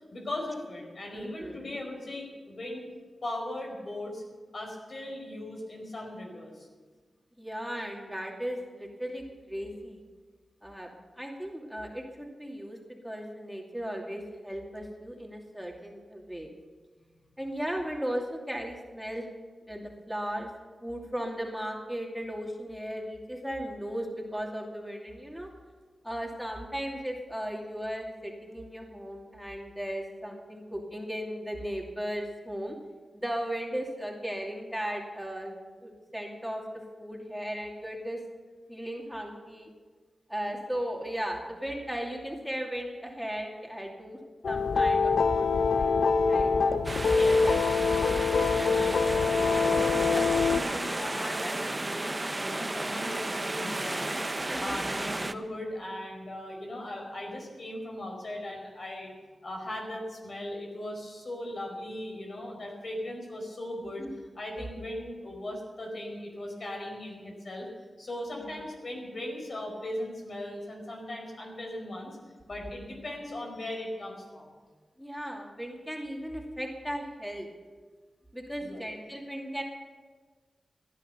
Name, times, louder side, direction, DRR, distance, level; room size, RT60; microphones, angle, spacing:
voice 1, 0.1-2.8 3.2-4.2 4.5-6.7 47.0-54.2 54.6-59.1 59.4-64.1 64.3-67.7 68.0-72.2 72.5-74.5 78.6-78.8, left 1 dB, 60° left, 1 dB, 4.8 m, -38 dB
voice 2, 1.1-1.6 7.4-10.0 10.6-10.9 11.1-12.8 13.0-16.5 17.4-19.3 19.7-20.5 20.8-25.5 26.0-32.7 33.1-35.5 35.8-36.6 37.0-38.2 38.7-39.7 40.3-44.2 44.5-46.5 54.2-54.9 64.0-64.1 68.4-68.5 75.0-77.5 78.3-79.6, equal, ahead, -1 dB, 2.6 m, -36 dB
sound 1, 44.4-50.6, left 4 dB, 80° left, 0.6 m, -24 dB
sound 2, 46.8-55.3, right 2 dB, 30° right, 0.8 m, -33 dB
16.5 x 10.5 x 6.9 m, 1.4 s
cardioid pair, 55°, 0 cm